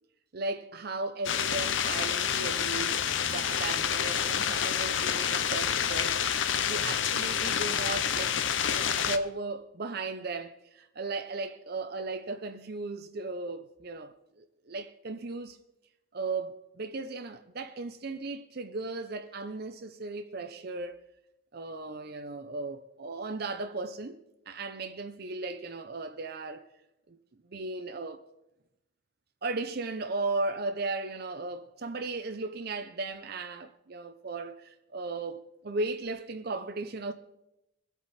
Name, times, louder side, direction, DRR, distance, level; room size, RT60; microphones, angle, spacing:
voice 1, 0.3-3.0 3.3-6.2 6.7-8.4 8.7-15.6 16.1-21.0 21.5-24.2 24.5-26.6 27.1-27.2 27.5-28.2 29.4-37.1, right 3 dB, 50° right, 0.7 m, -36 dB
sound 1, 1.2-9.2, left 8 dB, 70° left, 0.7 m, -28 dB
21.5 x 8.2 x 4.2 m
head